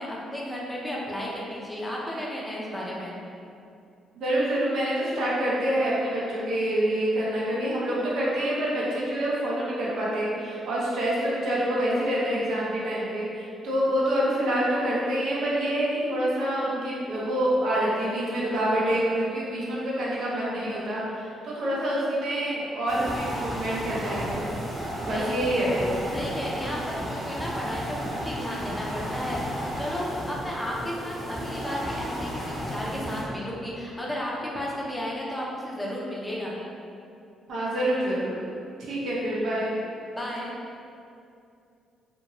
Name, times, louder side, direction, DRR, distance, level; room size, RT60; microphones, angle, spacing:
voice 1, 0.0-3.1 25.1-25.3 26.1-36.5 40.1-40.5, left 1 dB, 10° left, -4 dB, 0.6 m, -33 dB
voice 2, 4.2-24.5 25.0-25.9 37.5-38.4 38.8-39.7, right 1 dB, 75° right, -6 dB, 0.8 m, -27 dB
sound 1, 22.9-33.2, equal, 25° right, 1.0 m, -33 dB
2.7 x 2.6 x 2.9 m, 2.5 s
cardioid pair, 90°, 0 cm